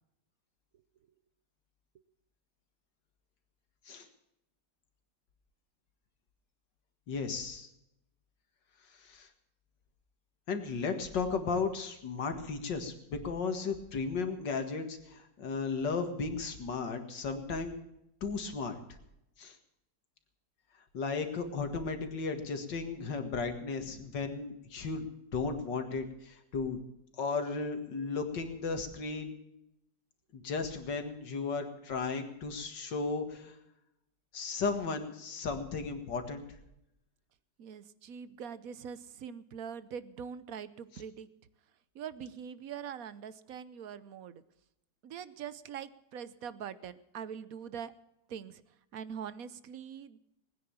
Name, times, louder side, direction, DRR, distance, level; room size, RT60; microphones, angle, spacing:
voice 1, 7.1-7.7 8.9-9.3 10.5-17.7 18.2-18.8 19.4-19.6 20.9-26.8 27.2-29.3 30.3-33.6 34.3-36.6, left 4 dB, 80° left, 7 dB, 2.5 m, -35 dB
voice 2, 37.6-41.3 41.9-44.4 45.0-47.9 48.3-48.6 48.9-50.2, right 7 dB, 60° right, 15 dB, 1.1 m, -43 dB
20.0 x 9.7 x 7.1 m, 0.84 s
omnidirectional pair, 1.9 m